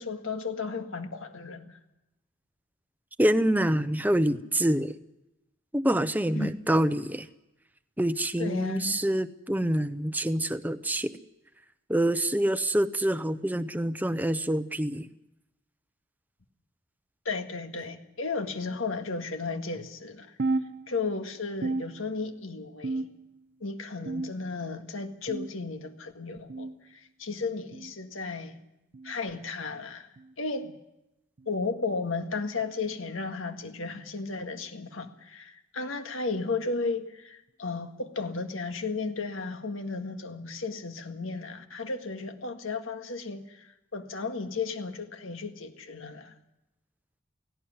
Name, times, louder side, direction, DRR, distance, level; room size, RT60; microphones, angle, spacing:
voice 1, 0.0-1.8 6.3-6.5 8.4-9.0 17.3-20.4 20.9-23.1 23.6-28.6 29.0-30.1 30.4-30.7 31.5-46.3, left 4 dB, 80° left, 1.8 m, -34 dB
voice 2, 3.2-5.0 5.7-7.3 8.0-11.2 11.9-15.1, right 1 dB, 10° right, 0.7 m, -26 dB
sound 1, 20.4-21.2 21.6-22.4 22.8-23.4 24.1-24.7 25.3-25.7 26.5-26.7 27.7-27.9 28.9-29.1 30.2-30.3 31.4-31.6 32.6-32.8 33.8-33.9 35.0-35.1, right 3 dB, 55° right, 0.6 m, -34 dB
17.5 x 17.0 x 9.6 m
head